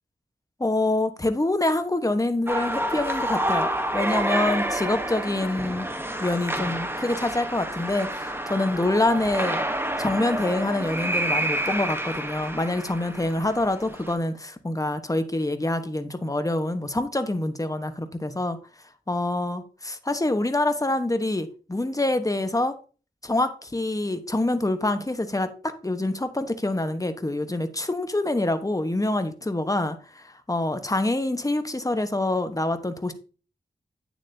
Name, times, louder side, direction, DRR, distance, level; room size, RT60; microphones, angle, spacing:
voice 1, 0.6-5.9 6.2-9.6 10.0-18.6 19.1-22.7 23.2-33.1, left 2 dB, 20° left, 1.1 m, -26 dB
sound 1, 2.5-14.1, right 1 dB, 15° right, 1.0 m, -29 dB
9.1 x 7.2 x 2.7 m
cardioid pair, 50°, 17 cm